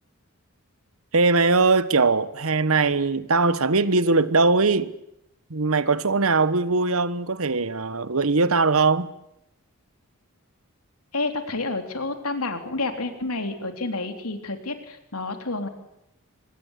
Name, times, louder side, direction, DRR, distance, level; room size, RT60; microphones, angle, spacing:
voice 1, 1.1-4.9 5.5-9.1, right 3 dB, 70° right, 1.2 m, -21 dB
voice 2, 11.1-15.7, left 3 dB, 85° left, 3.7 m, -29 dB
24.5 x 21.0 x 8.3 m
head